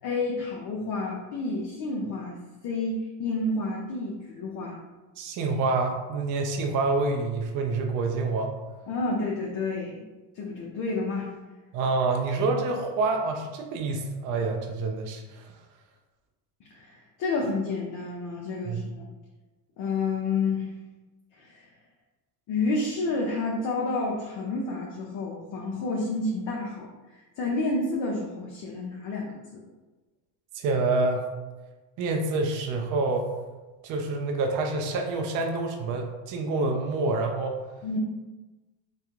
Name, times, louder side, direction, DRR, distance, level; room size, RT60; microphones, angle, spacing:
voice 1, 0.0-2.4 2.6-4.8 8.9-10.0 10.3-11.3 16.7-16.9 17.2-19.1 19.8-20.7 21.3-21.7 22.5-29.6 37.8-38.0, left 3 dB, 45° left, -2 dB, 0.5 m, -30 dB
voice 2, 5.2-8.5 11.7-15.5 18.6-18.8 30.5-31.3 32.0-33.3 33.8-37.6, right 3 dB, 45° right, 2 dB, 0.4 m, -27 dB
2.3 x 2.2 x 2.9 m, 1.2 s
supercardioid pair, 95°, 47 cm